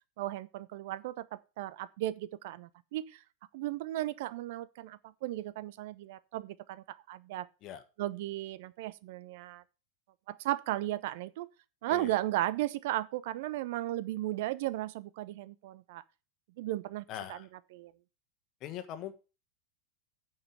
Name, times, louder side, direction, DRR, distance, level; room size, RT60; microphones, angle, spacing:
voice 1, 0.2-3.2 3.5-7.5 8.0-9.6 10.3-11.5 11.8-16.0 16.6-17.4 17.7-17.9, right 15 dB, 50° right, 0.5 m, -35 dB
voice 2, 17.1-17.5 18.6-19.1, left 11 dB, 35° left, 1.3 m, -41 dB
9.6 x 5.4 x 6.9 m
figure-of-eight pair, 90°, 0 cm